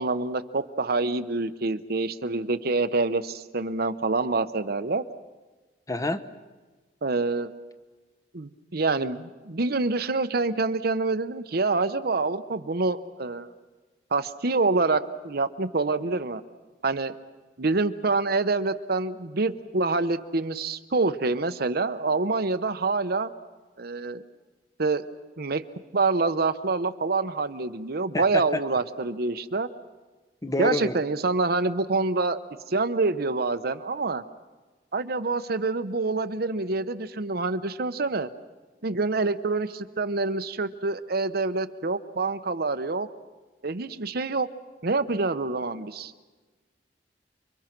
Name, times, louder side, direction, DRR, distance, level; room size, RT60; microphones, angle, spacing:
voice 1, 0.0-5.0 7.0-7.5 8.3-13.5 14.1-16.4 16.8-17.1 17.6-23.3 23.8-24.2 24.8-25.0 25.4-25.6 25.9-29.7 30.6-32.4 32.7-34.2 34.9-38.3 38.8-43.1 43.6-44.5 44.8-46.1, right 3 dB, 60° right, 10 dB, 0.9 m, -26 dB
voice 2, 5.9-6.2 28.1-28.6 30.4-31.0, left 2 dB, 20° left, 10 dB, 1.0 m, -27 dB
30.0 x 23.5 x 6.0 m, 1.3 s
head